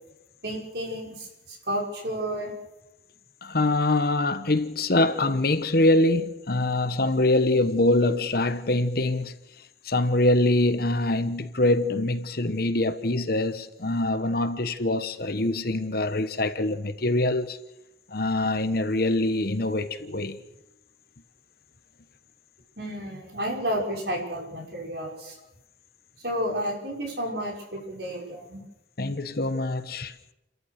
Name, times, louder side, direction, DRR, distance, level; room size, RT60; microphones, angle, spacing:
voice 1, 0.4-2.5 22.8-25.4 26.2-28.6, equal, 60° right, 6.0 m, -31 dB
voice 2, 3.4-9.3 9.8-17.6 18.1-20.4 29.0-30.1, left 2 dB, 50° left, 1.1 m, -24 dB
29.5 x 14.0 x 6.6 m
head